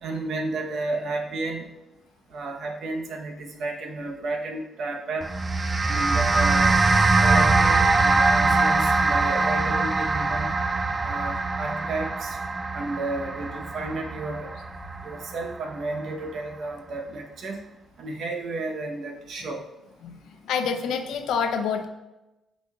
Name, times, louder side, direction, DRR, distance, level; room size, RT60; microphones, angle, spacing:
voice 1, 0.0-1.7 2.3-5.3 5.9-6.7 7.2-10.5 11.0-12.4 12.7-14.5 15.0-17.6 18.0-19.6, right 2 dB, 65° right, 2 dB, 1.0 m, -32 dB
sound 1, 5.2-15.8, right 3 dB, 30° right, 0.4 m, -22 dB
voice 2, 20.4-21.9, left 6 dB, 80° left, 6 dB, 0.6 m, -27 dB
8.1 x 5.1 x 2.4 m, 0.99 s
cardioid pair, 90°, 0 cm